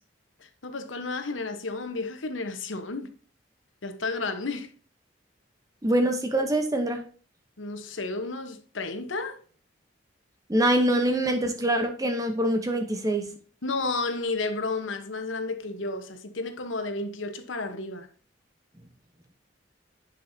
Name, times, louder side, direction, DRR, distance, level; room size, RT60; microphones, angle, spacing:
voice 1, 0.4-3.1 3.8-4.7 7.6-9.4 13.6-18.1, left 3 dB, 80° left, 1.0 m, -32 dB
voice 2, 5.8-7.1 10.5-13.4, right 1 dB, 20° right, 0.8 m, -24 dB
10.0 x 5.5 x 2.7 m
head